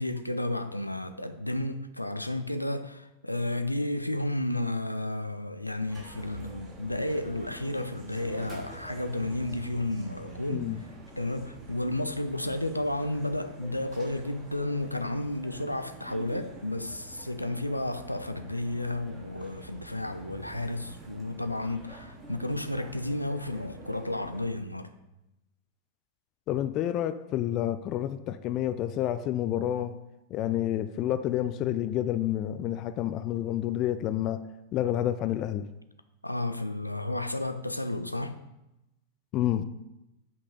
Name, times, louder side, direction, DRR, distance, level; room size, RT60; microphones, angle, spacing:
voice 1, 0.0-10.7 11.2-24.9 36.2-38.4, left 1 dB, 85° left, 0.6 m, -32 dB
sound 1, 5.9-24.5, right 1 dB, 15° right, 3.0 m, -47 dB
voice 2, 26.5-29.9 30.3-34.4 34.7-35.7 39.3-39.6, left 12 dB, 35° left, 0.4 m, -29 dB
8.3 x 5.3 x 5.3 m
figure-of-eight pair, 90°, 0 cm